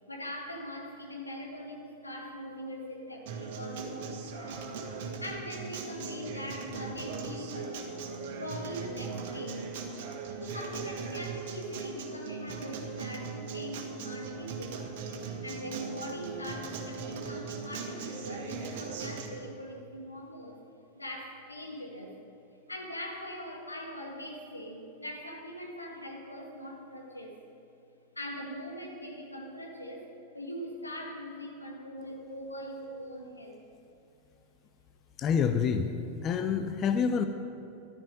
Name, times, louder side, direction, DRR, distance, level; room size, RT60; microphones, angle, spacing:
voice 1, 0.1-4.7 5.2-7.8 8.3-9.7 10.4-15.0 15.4-20.6 20.9-22.1 22.7-27.4 28.1-33.6, equal, 85° left, 1 dB, 2.0 m, -41 dB
Acoustic guitar, 3.3-19.3, right 5 dB, 50° right, 1.7 m, -39 dB
voice 2, 35.2-35.9 36.2-37.2, left 6 dB, 30° left, 8 dB, 0.6 m, -27 dB
14.0 x 12.5 x 5.2 m, 2.7 s
figure-of-eight pair, 90°, 0 cm